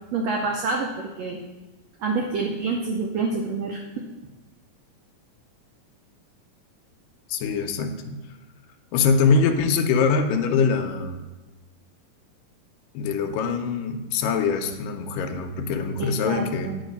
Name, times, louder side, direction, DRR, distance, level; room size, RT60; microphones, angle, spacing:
voice 1, 0.1-1.4 2.0-4.1 16.0-16.8, right 3 dB, 80° right, 1 dB, 1.5 m, -27 dB
voice 2, 7.3-8.3 8.9-11.2 12.9-16.8, left 5 dB, 85° left, 6 dB, 2.3 m, -23 dB
9.3 x 5.1 x 5.3 m, 1.1 s
omnidirectional pair, 3.9 m